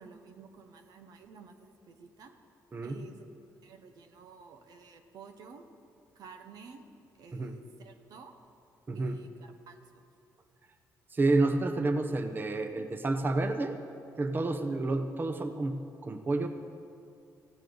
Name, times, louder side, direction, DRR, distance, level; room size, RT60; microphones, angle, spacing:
voice 1, 0.0-2.3 2.8-3.3 3.6-5.6 6.1-6.9 7.2-8.4 8.9-10.1, right 5 dB, 75° right, 6 dB, 1.1 m, -51 dB
voice 2, 8.9-9.2 11.1-13.8 14.2-15.8 16.0-16.5, right 2 dB, 30° right, 7 dB, 0.9 m, -29 dB
16.5 x 15.5 x 4.0 m, 2.5 s
cardioid pair, 80°, 7 cm